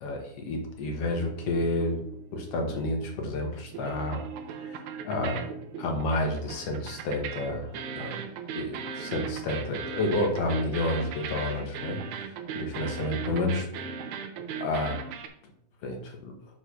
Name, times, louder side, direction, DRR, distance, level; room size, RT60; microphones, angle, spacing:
voice 1, 0.0-2.0 2.3-4.2 4.6-4.8 5.0-5.5 5.8-8.2 8.5-12.0 12.5-13.7 14.6-15.0 15.8-16.2, left 2 dB, 60° left, 2 dB, 2.1 m, -30 dB
sound 1, 1.2-3.4 3.6-15.3, right 7 dB, 70° right, 2.0 m, -38 dB
6.5 x 4.4 x 6.2 m, 0.67 s
omnidirectional pair, 3.6 m